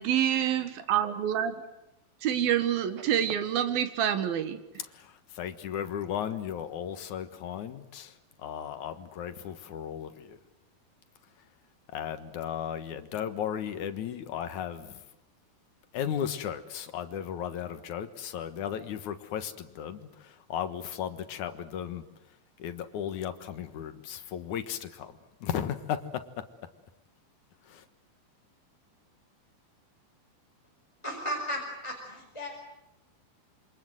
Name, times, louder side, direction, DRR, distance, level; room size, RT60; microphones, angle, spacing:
voice 1, 0.0-1.6 2.2-4.6, right 10 dB, 80° right, 10 dB, 3.4 m, -27 dB
voice 2, 4.8-10.4 11.9-15.0 15.9-22.0 22.6-26.5 27.6-27.8, left 9 dB, 60° left, 9 dB, 2.6 m, -35 dB
voice 3, 31.0-32.5, equal, 10° left, -1 dB, 4.7 m, -35 dB
27.5 x 26.0 x 8.0 m, 0.89 s
omnidirectional pair, 4.2 m